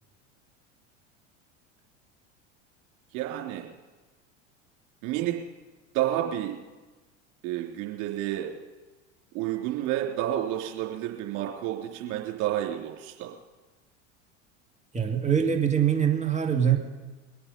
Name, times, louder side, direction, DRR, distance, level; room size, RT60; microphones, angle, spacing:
voice 1, 3.1-3.6 5.0-5.4 5.9-6.6 7.4-8.5 9.3-13.3, right 12 dB, 55° right, 0 dB, 3.5 m, -30 dB
voice 2, 14.9-16.8, right 8 dB, 20° right, 2 dB, 2.1 m, -23 dB
23.0 x 8.8 x 5.4 m, 1.2 s
hypercardioid pair, 85°, 37 cm